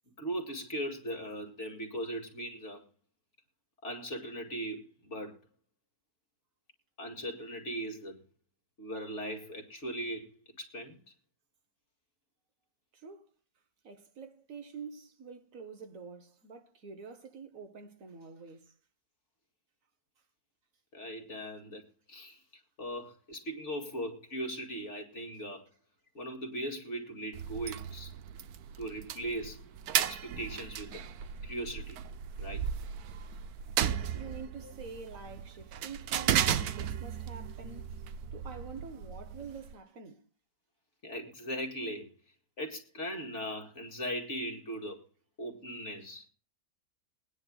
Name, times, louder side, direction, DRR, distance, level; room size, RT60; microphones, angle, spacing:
voice 1, 0.2-2.8 3.8-5.4 7.0-8.2 8.8-11.0 20.9-21.8 22.1-22.4 22.8-25.7 26.1-28.1 28.8-29.7 30.0-31.0 31.4-32.0 32.4-32.6 34.6-34.7 41.0-42.1 42.6-45.0 45.4-46.3, equal, 50° left, 2.5 m, -39 dB
voice 2, 12.9-13.3 13.8-18.8 34.1-38.0 38.3-40.3, right 5 dB, 65° right, 1.5 m, -47 dB
sound 1, 27.3-39.7, right 9 dB, 80° right, 1.2 m, -35 dB
21.5 x 9.9 x 2.3 m
omnidirectional pair, 1.6 m